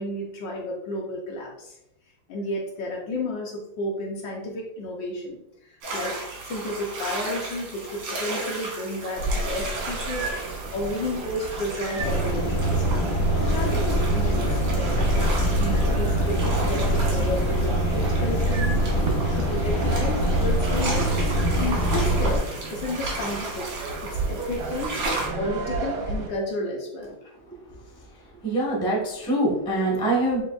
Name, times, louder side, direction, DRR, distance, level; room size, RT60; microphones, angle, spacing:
voice 1, 0.0-1.8 2.3-5.4 5.9-6.2 6.4-10.3 10.7-12.9 13.1-18.9 19.4-21.1 21.5-22.4 22.7-23.7 24.0-25.0 25.3-27.3, left 1 dB, 70° left, -1 dB, 1.2 m, -32 dB
sound 1, 5.8-25.3, right 2 dB, 90° right, 2.0 m, -35 dB
sound 2, 9.2-26.3, right 2 dB, 70° right, 0.8 m, -33 dB
sound 3, 12.0-22.4, right 1 dB, 40° left, 0.7 m, -23 dB
voice 2, 28.4-30.4, right 1 dB, 5° left, -3 dB, 0.4 m, -24 dB
6.9 x 2.5 x 2.3 m, 0.85 s
omnidirectional pair, 2.4 m